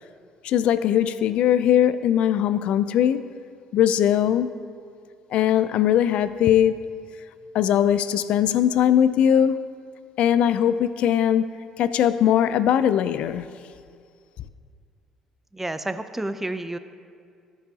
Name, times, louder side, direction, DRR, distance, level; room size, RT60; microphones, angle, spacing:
voice 1, 0.4-3.3 3.7-4.5 5.3-6.8 7.5-9.7 10.2-11.5 11.8-13.5, left 10 dB, 65° left, 0.3 m, -20 dB
voice 2, 15.5-16.8, right 1 dB, 10° right, 0.5 m, -30 dB
14.0 x 5.5 x 2.8 m
hypercardioid pair, 55°, 2 cm